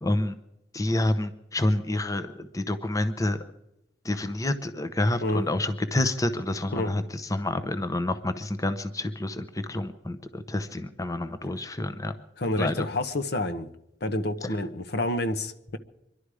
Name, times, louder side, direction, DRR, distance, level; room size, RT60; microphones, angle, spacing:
voice 1, 0.0-0.3 0.7-3.4 4.0-12.1 12.6-12.9, left 1 dB, 20° left, 0.8 m, -28 dB
voice 2, 5.2-5.5 6.7-7.0 12.4-13.7 14.0-15.8, left 1 dB, 65° left, 1.0 m, -28 dB
25.5 x 11.5 x 4.9 m
head